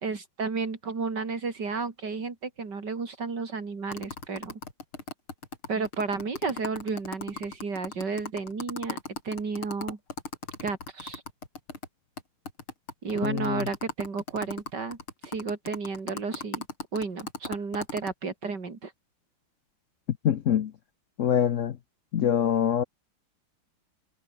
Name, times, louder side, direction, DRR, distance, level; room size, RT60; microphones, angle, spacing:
voice 1, 0.0-4.6 5.7-9.0 9.2-10.0 10.6-11.2 13.0-15.0 15.2-16.6 16.9-18.9, right 4 dB, 55° right, 3.6 m, -32 dB
sound 1, 3.9-11.9 12.2-12.3 12.5-18.1, left 4 dB, 85° left, 5.0 m, -37 dB
voice 2, 13.2-13.6 20.2-20.7 21.2-21.8 22.1-22.8, left 9 dB, 65° left, 0.7 m, -24 dB
omnidirectional pair, 2.3 m